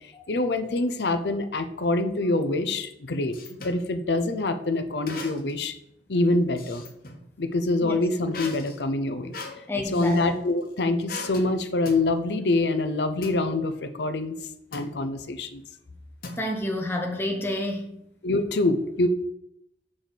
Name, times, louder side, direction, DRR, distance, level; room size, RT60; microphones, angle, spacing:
voice 1, 0.3-3.3 3.6-5.7 6.1-6.8 7.4-9.3 9.9-14.4 14.7-15.6 18.2-19.1, left 2 dB, 75° left, 9 dB, 0.7 m, -25 dB
sound 1, 2.7-3.8 5.1-5.6 6.0-7.2 8.3-10.3 11.1-11.5 11.9-12.1 13.2-13.4 14.7-15.0 16.2-16.8, left 3 dB, 55° left, 1.0 m, -39 dB
voice 2, 9.7-10.2 16.4-17.9, left 1 dB, 15° left, 1 dB, 0.8 m, -29 dB
6.3 x 4.9 x 4.0 m, 0.77 s
head